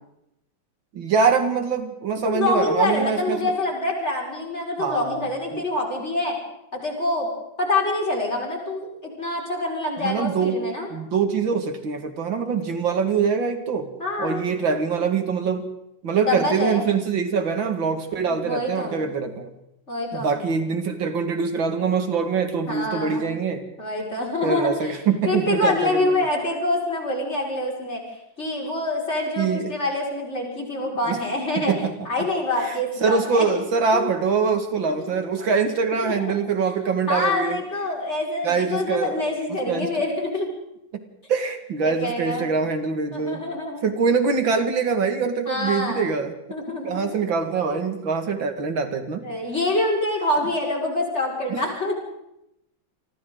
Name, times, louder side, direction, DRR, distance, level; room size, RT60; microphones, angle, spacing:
voice 1, 0.9-3.5 4.8-5.2 5.5-5.6 10.0-13.9 14.2-15.7 16.0-19.5 20.1-23.6 24.4-26.3 29.4-29.7 31.1-31.2 31.6-31.9 32.2-32.3 32.6-37.6 38.4-39.9 40.9-41.0 41.3-43.4 43.8-46.3 46.7-49.2 50.4-50.5 51.5-51.6, right 5 dB, 90° right, 7 dB, 2.7 m, -24 dB
voice 2, 2.2-6.3 6.7-7.3 7.6-10.9 14.0-14.4 16.2-16.9 18.2-19.0 19.9-20.3 22.7-23.3 23.8-24.9 25.2-28.0 28.4-31.7 32.1-33.5 33.9-34.0 34.8-35.2 36.0-36.3 36.7-36.8 37.1-40.5 41.8-42.5 43.1-43.8 45.5-46.1 46.5-47.1 49.2-51.9, left 2 dB, 35° left, -1 dB, 5.7 m, -26 dB
28.5 x 24.5 x 3.9 m, 0.82 s
omnidirectional pair, 2.1 m